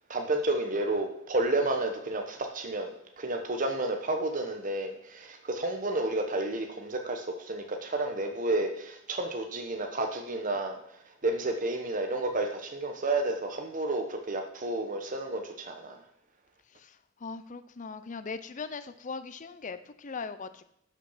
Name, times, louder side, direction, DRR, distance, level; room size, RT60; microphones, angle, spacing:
voice 1, 0.1-10.8 11.2-16.0, right 2 dB, 40° right, 4 dB, 1.1 m, -31 dB
voice 2, 16.7-20.7, left 4 dB, 40° left, 11 dB, 0.6 m, -40 dB
11.5 x 6.0 x 5.7 m, 0.74 s
head